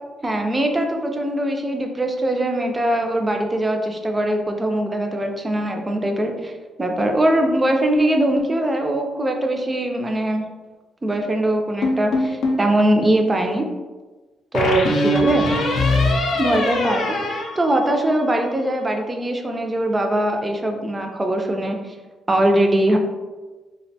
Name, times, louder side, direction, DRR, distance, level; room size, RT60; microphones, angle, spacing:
voice 1, 0.2-6.5 6.8-10.4 11.0-13.6 14.5-15.6 16.3-21.9 22.3-23.0, right 1 dB, 20° right, 3 dB, 0.3 m, -21 dB
sound 1, 11.8-12.7 14.5-18.3, left 1 dB, 70° left, 0.4 m, -22 dB
2.5 x 2.1 x 2.6 m, 1.3 s
cardioid pair, 90°, 0 cm